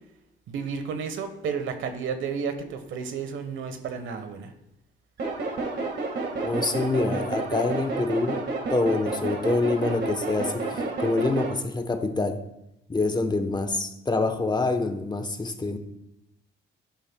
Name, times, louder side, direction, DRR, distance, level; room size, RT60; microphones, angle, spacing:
voice 1, 0.5-4.5, right 6 dB, 80° right, 8 dB, 1.2 m, -32 dB
sound 1, 5.2-11.5, right 3 dB, 60° right, 1.8 m, -30 dB
voice 2, 6.4-12.4 12.9-15.8, left 3 dB, 20° left, 7 dB, 1.0 m, -26 dB
11.5 x 11.5 x 2.3 m, 0.86 s
cardioid pair, 90°, 20 cm